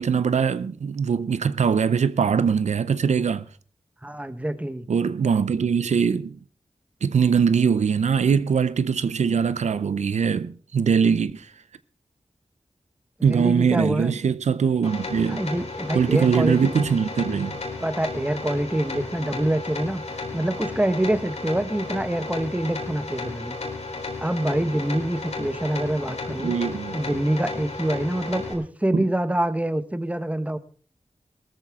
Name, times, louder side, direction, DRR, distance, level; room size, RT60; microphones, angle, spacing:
voice 1, 0.0-3.5 4.9-6.4 7.0-11.5 13.2-15.4 15.9-17.6 26.4-27.0 28.9-29.0, right 6 dB, 85° right, 0.6 m, -22 dB
voice 2, 4.0-4.9 13.3-14.2 15.3-16.8 17.8-20.0 20.3-23.6 24.2-26.5 26.9-30.6, right 1 dB, 10° right, 1.2 m, -26 dB
sound 1, 14.8-28.5, left 3 dB, 70° left, 4.0 m, -33 dB
18.0 x 13.5 x 3.6 m
cardioid pair, 45°, 11 cm